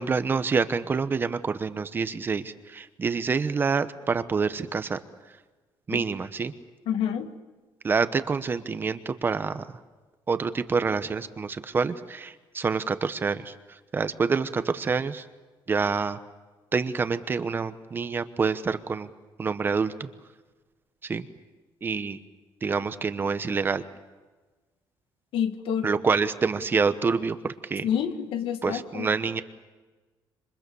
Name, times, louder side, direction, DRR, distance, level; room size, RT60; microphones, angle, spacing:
voice 1, 0.0-5.0 5.9-6.5 7.8-9.7 10.3-15.2 15.7-16.2 16.7-19.1 19.4-20.1 21.0-21.2 21.8-22.2 22.6-23.8 25.8-27.9 28.6-29.4, right 5 dB, 25° right, 11 dB, 1.0 m, -27 dB
voice 2, 6.9-7.3 25.3-25.9 27.8-29.1, left 9 dB, 80° left, 7 dB, 2.1 m, -28 dB
27.5 x 25.0 x 7.0 m, 1.3 s
cardioid pair, 175°, 9 cm